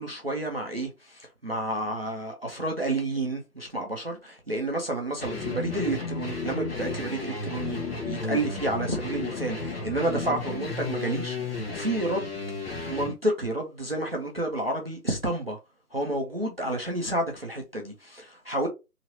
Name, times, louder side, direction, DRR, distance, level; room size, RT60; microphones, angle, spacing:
voice 1, 0.0-12.3 12.8-15.6 15.9-18.7, right 1 dB, 40° right, 0.6 m, -30 dB
sound 1, 5.2-13.1, left 4 dB, 40° left, 1.1 m, -33 dB
2.9 x 2.8 x 2.7 m
figure-of-eight pair, 170°, 47 cm